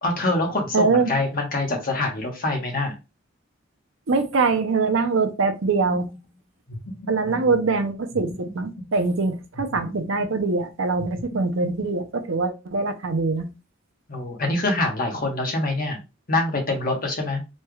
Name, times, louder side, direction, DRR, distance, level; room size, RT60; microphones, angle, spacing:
voice 1, 0.0-2.9 7.2-7.5 14.1-16.0 16.3-17.4, left 2 dB, 45° left, 1.2 m, -25 dB
voice 2, 0.7-1.1 4.1-6.1 7.1-13.5, right 4 dB, 75° right, 0.6 m, -23 dB
sound 1, 5.7-6.2 6.7-7.7 8.1-9.1 9.5-10.6 11.0-12.1, left 1 dB, 70° left, 1.1 m, -39 dB
4.3 x 3.2 x 2.3 m
head